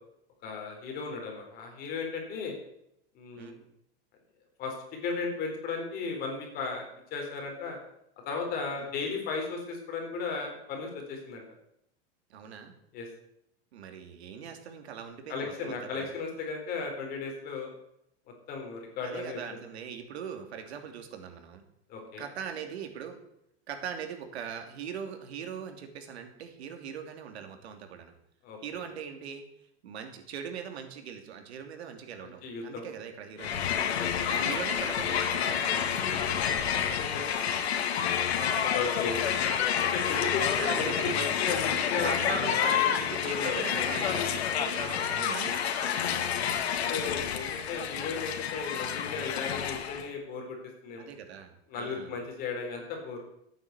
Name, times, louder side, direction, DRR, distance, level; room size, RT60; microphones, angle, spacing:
voice 1, 0.4-2.5 3.1-3.6 4.6-4.7 5.0-7.8 8.3-11.4 12.9-13.1 15.3-17.7 18.5-19.4 21.9-22.2 28.4-28.8 32.2-32.8 34.0-34.1 38.4-39.2 39.8-42.9 43.2-43.8 44.6-44.9 46.7-50.6 50.8-51.1 51.7-53.2, left 4 dB, 30° left, 2 dB, 4.0 m, -35 dB
voice 2, 12.3-12.7 13.7-16.1 19.0-21.7 22.2-23.2 23.7-28.1 28.6-29.4 29.8-37.0 38.6-38.8 40.6-41.6 42.0-46.2 51.0-52.2, right 7 dB, 85° right, 6 dB, 2.9 m, -41 dB
Crowd, 33.4-50.1, left 8 dB, 85° left, 2.1 m, -29 dB
14.0 x 9.1 x 8.2 m, 0.77 s
supercardioid pair, 165°, 31 cm